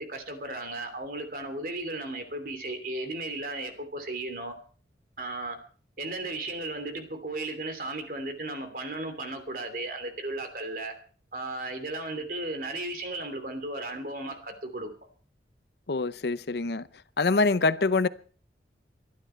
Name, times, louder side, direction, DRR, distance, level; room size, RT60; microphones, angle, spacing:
voice 1, 0.0-4.5 5.2-5.6 6.0-10.9 11.3-14.9, right 2 dB, 50° right, 2.9 m, -35 dB
voice 2, 15.9-16.9 17.2-18.1, left 3 dB, 60° left, 0.6 m, -25 dB
23.5 x 11.5 x 4.5 m
head